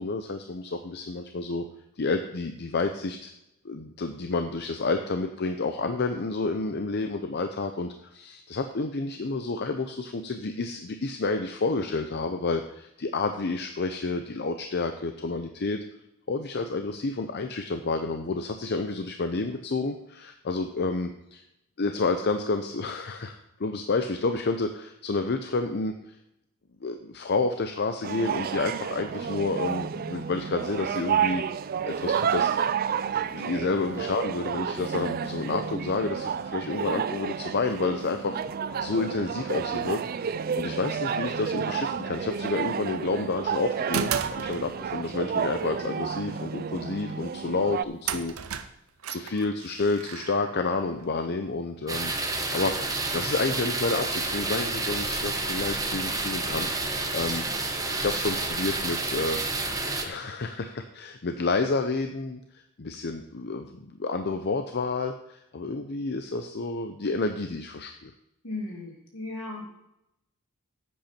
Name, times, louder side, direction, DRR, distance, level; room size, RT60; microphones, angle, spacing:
voice 1, 0.0-1.6 2.0-3.3 3.6-15.8 16.3-21.4 21.8-26.2 26.8-31.4 31.8-32.5 33.2-38.4 38.8-48.3 49.1-57.4 58.0-59.5 60.0-62.4 62.8-68.1, left 3 dB, 50° left, 7 dB, 0.6 m, -30 dB
sound 1, 28.0-47.8, right 7 dB, 40° right, 0.4 m, -30 dB
sound 2, 42.9-43.2 43.9-45.1 47.5-47.6 48.1-51.1, right 7 dB, 65° right, 0.7 m, -35 dB
sound 3, 51.9-60.0, right 3 dB, 15° right, 1.1 m, -29 dB
voice 2, 68.4-69.7, left 2 dB, 70° left, -2 dB, 3.1 m, -36 dB
10.5 x 8.6 x 4.4 m, 0.83 s
head